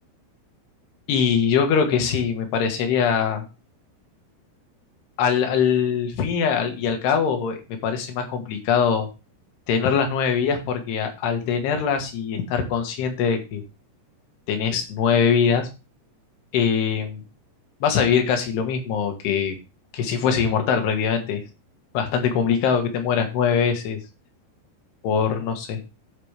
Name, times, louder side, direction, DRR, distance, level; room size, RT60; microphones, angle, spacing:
voice 1, 1.1-3.5 5.2-9.1 9.7-13.6 14.5-15.7 16.5-17.2 17.8-19.6 19.9-21.4 22.0-24.0 25.0-25.8, left 7 dB, 80° left, 5 dB, 3.6 m, -22 dB
15.5 x 5.2 x 3.3 m, 0.29 s
omnidirectional pair, 4.7 m